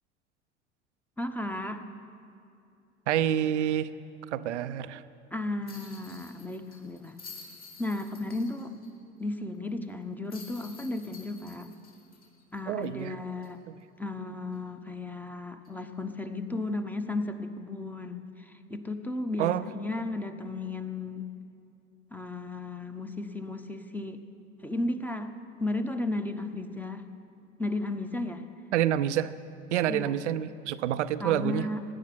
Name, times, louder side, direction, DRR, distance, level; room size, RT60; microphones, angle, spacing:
voice 1, 1.2-1.8 5.3-7.2 7.8-8.7 9.2-11.7 12.5-13.6 14.0-21.3 22.1-24.2 24.6-25.3 25.6-27.1 27.6-28.4 29.9-30.2 31.2-31.8, left 2 dB, 5° left, 8 dB, 0.9 m, -34 dB
voice 2, 3.1-3.9 4.3-5.0 12.7-13.2 19.4-19.7 28.7-29.3 29.7-31.7, right 11 dB, 80° right, 13 dB, 0.5 m, -27 dB
sound 1, 5.7-8.9 9.2-9.3 10.3-13.0 13.4-13.5 15.6-15.8, left 4 dB, 25° left, 4.0 m, -50 dB
16.5 x 11.0 x 6.1 m, 2.6 s
hypercardioid pair, 70°, 35 cm